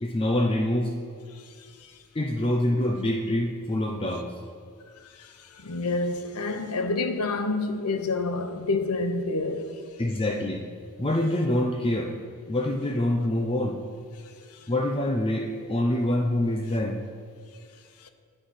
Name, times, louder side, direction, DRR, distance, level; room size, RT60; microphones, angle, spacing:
voice 1, 0.0-1.0 2.1-4.3 10.0-10.7 11.0-12.1 12.5-13.8 14.7-17.0, left 1 dB, 25° left, 0.6 m, -25 dB
voice 2, 5.2-9.8 18.0-18.1, left 3 dB, 80° left, 0.8 m, -28 dB
11.0 x 6.5 x 5.7 m
head